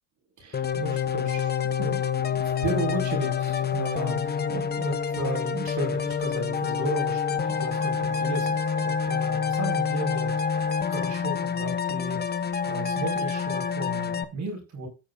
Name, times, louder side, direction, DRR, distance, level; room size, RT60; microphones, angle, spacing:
voice 1, 0.4-1.5 1.8-10.3 10.8-12.2 12.7-14.9, right 2 dB, 45° right, 3 dB, 4.8 m, -34 dB
sound 1, 0.5-14.2, left 6 dB, 25° left, 1.0 m, -27 dB
17.0 x 6.5 x 2.5 m, 0.29 s
supercardioid pair, 90°, 41 cm